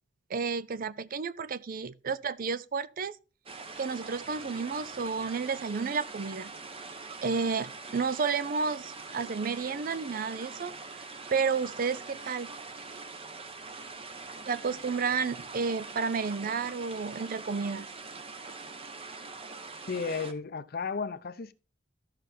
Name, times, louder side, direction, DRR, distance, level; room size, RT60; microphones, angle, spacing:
voice 1, 0.3-3.1 3.8-6.5 7.2-10.7 11.3-12.5 14.5-17.9, right 5 dB, 50° right, 0.5 m, -31 dB
sound 1, 3.5-20.3, right 4 dB, 30° right, 0.9 m, -43 dB
voice 2, 19.9-21.5, left 5 dB, 55° left, 0.6 m, -34 dB
13.0 x 5.7 x 3.3 m
head